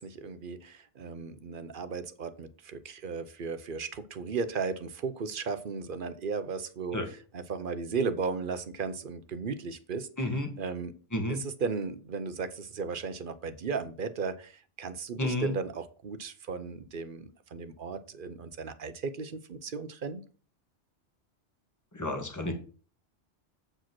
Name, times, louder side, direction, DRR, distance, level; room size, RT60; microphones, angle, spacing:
voice 1, 0.0-7.0 7.3-10.1 10.6-10.9 11.6-20.2, right 5 dB, 50° right, 11 dB, 0.9 m, -35 dB
voice 2, 10.2-10.5 11.1-11.4 15.2-15.5 21.9-22.5, left 1 dB, 15° left, 4 dB, 1.5 m, -31 dB
7.8 x 5.0 x 5.9 m, 0.39 s
omnidirectional pair, 1.2 m